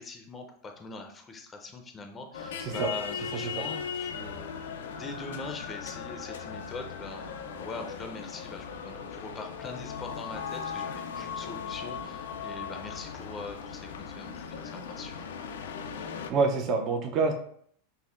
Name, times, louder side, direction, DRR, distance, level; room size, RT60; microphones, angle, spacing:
voice 1, 0.0-4.5 4.9-15.3, left 3 dB, 20° left, 4 dB, 0.5 m, -42 dB
sound 1, 2.3-16.3, left 6 dB, 85° left, 0.3 m, -38 dB
voice 2, 2.6-2.9 3.4-3.5 16.3-17.3, right 4 dB, 40° right, 3 dB, 0.5 m, -26 dB
5.4 x 2.1 x 2.4 m, 0.63 s
supercardioid pair, 125°, 0 cm